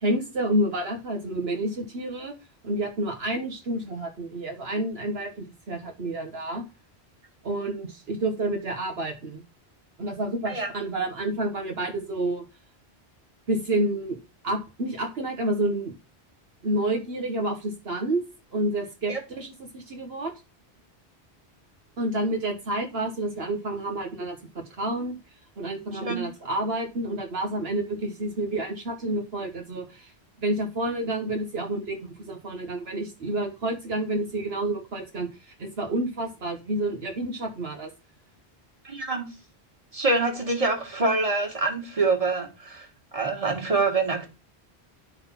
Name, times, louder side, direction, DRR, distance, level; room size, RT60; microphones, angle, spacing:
voice 1, 0.0-2.3 2.6-6.6 7.4-9.4 10.0-12.4 13.5-14.2 14.4-15.9 16.6-18.2 18.5-20.3 22.0-25.2 25.6-30.1 30.4-37.9, right 1 dB, 70° right, 3 dB, 1.5 m, -29 dB
voice 2, 38.8-39.3 39.9-42.9 43.1-44.3, right 3 dB, 35° right, 2 dB, 2.2 m, -25 dB
11.0 x 4.0 x 5.7 m, 0.30 s
omnidirectional pair, 1.1 m